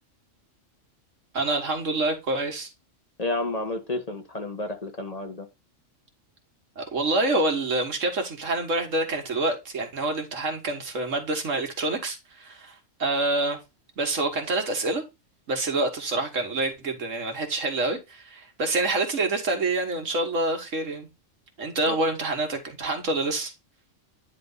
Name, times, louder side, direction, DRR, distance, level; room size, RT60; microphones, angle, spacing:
voice 1, 1.3-2.7 6.8-13.6 14.0-15.0 15.5-21.1 21.6-23.5, right 2 dB, 80° right, 2.0 m, -27 dB
voice 2, 3.2-5.5 21.9-22.0, left 2 dB, 30° left, 1.3 m, -31 dB
9.8 x 3.4 x 4.0 m
omnidirectional pair, 1.3 m